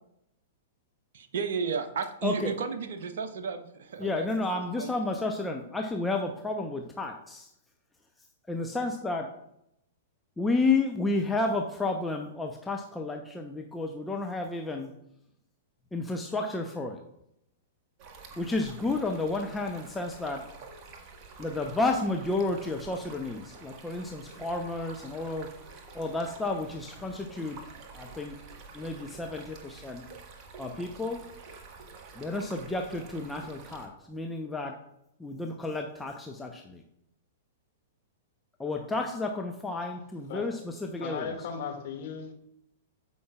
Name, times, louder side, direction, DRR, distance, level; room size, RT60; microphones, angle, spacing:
voice 1, 1.1-4.9, right 6 dB, 60° right, 7 dB, 0.8 m, -33 dB
voice 2, 2.2-2.6 4.0-7.5 8.5-9.3 10.4-14.9 15.9-17.0 18.4-20.4 21.4-25.5 25.9-27.6 27.9-28.3 28.7-30.0 30.6-31.2 32.2-34.7 35.2-36.8 38.6-40.5 40.8-41.2, left 3 dB, 10° left, 2 dB, 0.8 m, -31 dB
Stream, 18.0-33.9, right 4 dB, 35° right, 1.5 m, -48 dB
voice 3, 41.0-42.3, left 6 dB, 50° left, 2 dB, 2.0 m, -36 dB
15.0 x 5.5 x 2.4 m, 0.79 s
figure-of-eight pair, 105°, 0 cm